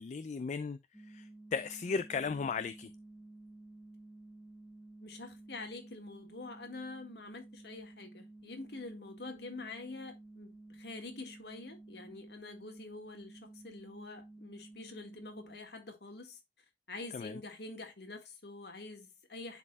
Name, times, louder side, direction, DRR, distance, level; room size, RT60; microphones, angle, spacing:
voice 1, 0.0-2.9 17.1-17.4, left 5 dB, 40° left, 0.3 m, -36 dB
sound 1, 0.9-15.6, right 2 dB, 5° left, 0.7 m, -53 dB
voice 2, 5.0-16.4 16.9-19.6, left 3 dB, 65° left, 1.8 m, -46 dB
10.5 x 4.3 x 2.3 m
head